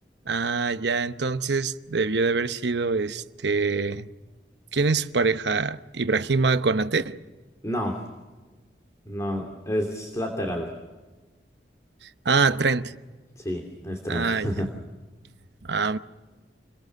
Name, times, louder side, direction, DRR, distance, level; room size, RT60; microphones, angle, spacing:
voice 1, 0.3-4.1 4.7-7.2 12.0-12.9 14.1-14.6 15.7-16.0, right 4 dB, 75° right, 0.9 m, -24 dB
voice 2, 7.6-8.0 9.1-10.7 13.4-14.7, equal, 20° left, 2.8 m, -29 dB
29.5 x 22.5 x 6.6 m
head